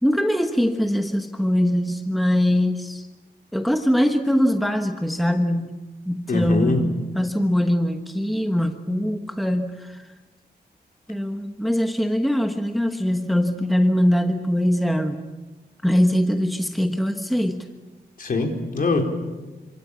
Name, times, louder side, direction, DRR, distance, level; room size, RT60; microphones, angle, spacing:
voice 1, 0.0-3.1 3.5-5.8 6.1-10.0 11.1-15.2 15.8-17.7, equal, ahead, 5 dB, 1.3 m, -22 dB
voice 2, 6.3-6.8 18.2-19.0, left 3 dB, 55° left, 2 dB, 4.4 m, -23 dB
27.5 x 26.0 x 7.4 m, 1.2 s
wide cardioid pair, 145°, 17 cm